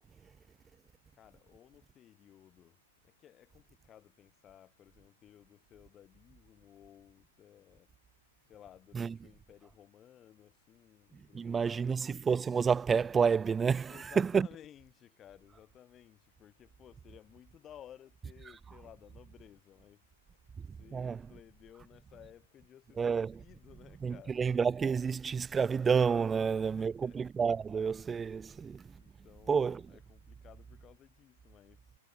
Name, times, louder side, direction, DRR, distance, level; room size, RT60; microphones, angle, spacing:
voice 1, 1.1-7.9 8.5-12.0 13.9-24.4 26.4-26.5 26.8-27.2 28.9-32.0, left 10 dB, 25° left, 3.0 m, -57 dB
voice 2, 11.1-14.5 20.6-21.2 23.0-23.4 24.0-29.0 29.5-29.9, right 6 dB, 15° right, 0.4 m, -30 dB
figure-of-eight pair, 100°, 0 cm